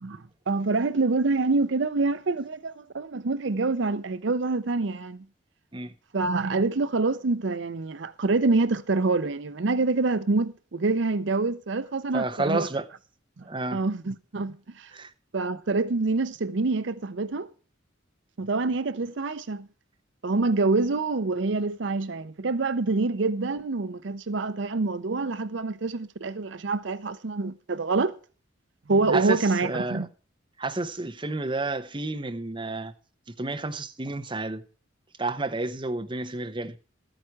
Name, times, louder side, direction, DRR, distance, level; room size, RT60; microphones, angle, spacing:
voice 1, 0.0-5.2 6.1-12.7 13.4-13.5 13.7-14.9 15.3-17.5 18.4-19.7 20.2-28.1 28.9-30.1, right 3 dB, 65° right, 0.6 m, -26 dB
voice 2, 12.1-12.8 13.4-13.8 14.9-15.1 29.1-30.1 30.6-32.9 33.4-34.6 35.2-36.8, right 2 dB, 25° right, 0.9 m, -30 dB
13.0 x 9.0 x 4.7 m
head